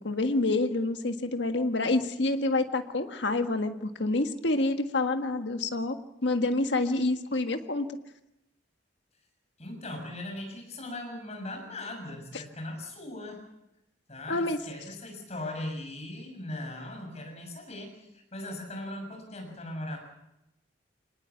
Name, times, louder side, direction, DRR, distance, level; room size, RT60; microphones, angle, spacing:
voice 1, 0.0-7.9 14.3-14.6, left 2 dB, 70° left, 6 dB, 1.6 m, -28 dB
voice 2, 9.6-13.4 14.1-20.0, left 1 dB, 35° left, 3 dB, 7.1 m, -39 dB
25.5 x 19.5 x 7.2 m, 0.89 s
head